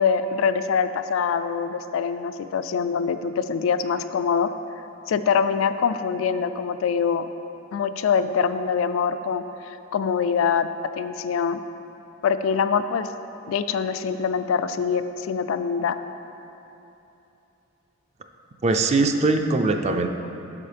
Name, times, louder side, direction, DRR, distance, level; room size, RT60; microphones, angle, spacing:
voice 1, 0.0-4.5 5.1-7.3 7.7-10.7 11.0-11.6 12.2-13.1 13.5-16.0, left 6 dB, 80° left, 10 dB, 0.3 m, -24 dB
voice 2, 18.6-20.1, right 3 dB, 35° right, 6 dB, 0.4 m, -21 dB
8.4 x 6.3 x 3.4 m, 2.9 s
head